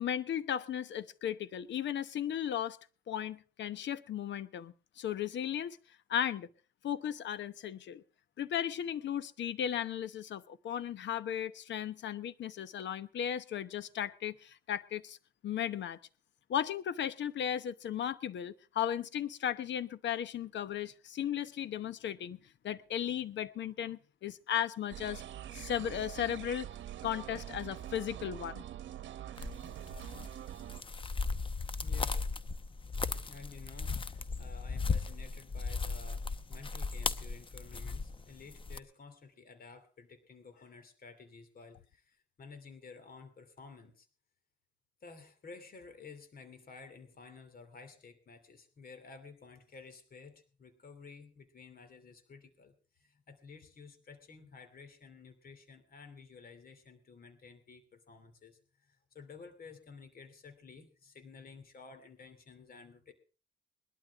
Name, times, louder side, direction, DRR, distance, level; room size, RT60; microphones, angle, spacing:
voice 1, 0.0-2.8 3.1-5.8 6.1-6.5 6.8-8.0 8.4-15.2 15.4-16.0 16.5-22.4 22.6-25.2 25.5-26.7 27.0-28.6, left 10 dB, 65° left, 1.0 m, -36 dB
sound 1, 24.9-30.8, right 11 dB, 70° right, 1.0 m, -44 dB
sound 2, 29.4-38.8, left 4 dB, 25° left, 0.8 m, -36 dB
voice 2, 31.8-32.3 33.2-44.1 45.0-63.1, left 4 dB, 50° left, 2.9 m, -53 dB
20.5 x 12.0 x 3.6 m
cardioid pair, 90°, 20 cm